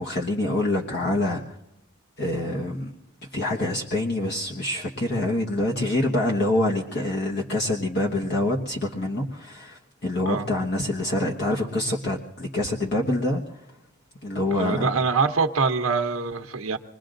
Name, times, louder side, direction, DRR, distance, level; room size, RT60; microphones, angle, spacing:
voice 1, 0.0-1.4 2.2-2.9 3.3-13.4 14.2-14.9, left 1 dB, 55° left, -2 dB, 1.3 m, -26 dB
voice 2, 14.5-16.8, right 4 dB, 90° right, 5 dB, 0.8 m, -24 dB
27.0 x 20.5 x 2.6 m, 0.85 s
head